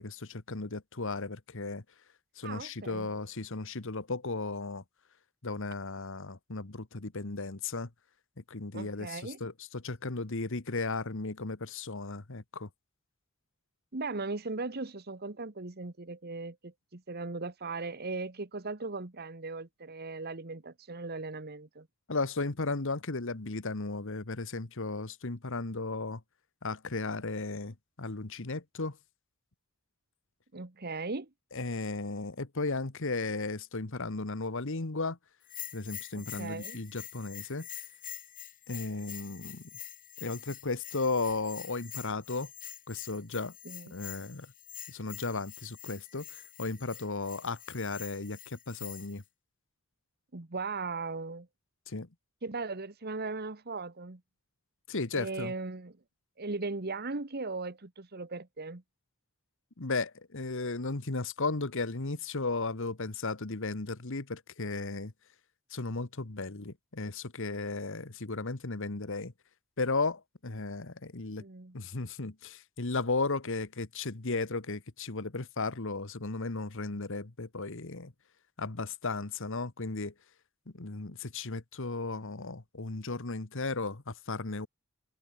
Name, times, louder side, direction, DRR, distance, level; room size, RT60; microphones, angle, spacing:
voice 1, 0.0-1.8 2.3-4.8 5.4-7.9 8.4-12.7 22.1-26.2 26.6-29.0 31.5-35.2 35.7-37.7 38.7-39.6 40.2-42.5 42.9-43.5 43.9-44.5 44.9-49.2 51.9-52.1 54.9-55.5 59.8-65.1 65.7-69.3 69.8-71.4 71.7-78.1 78.6-80.1 80.7-84.7, left 3 dB, 60° left, 1.5 m, -35 dB
voice 2, 2.4-3.1 8.7-9.4 13.9-21.9 30.5-31.3 36.1-36.8 43.6-43.9 50.3-51.5 52.4-54.2 55.1-55.9 56.4-58.8 71.4-71.8, right 3 dB, 45° right, 1.4 m, -38 dB
Bell, 35.4-49.2, left 12 dB, 40° left, 6.2 m, -46 dB
head